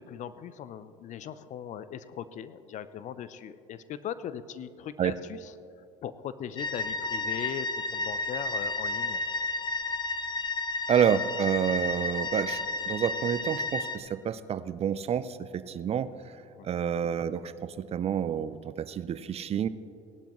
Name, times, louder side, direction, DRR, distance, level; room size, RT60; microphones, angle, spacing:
voice 1, 0.0-5.5 6.0-7.7 7.9-9.2 16.6-16.7, left 9 dB, 50° left, 14 dB, 0.6 m, -39 dB
sound 1, 6.6-14.0, left 2 dB, 30° left, 1.1 m, -32 dB
voice 2, 10.9-12.6 12.9-16.1 16.6-19.7, right 8 dB, 40° right, 14 dB, 0.6 m, -29 dB
17.5 x 11.5 x 3.1 m, 2.6 s
hypercardioid pair, 70°, 16 cm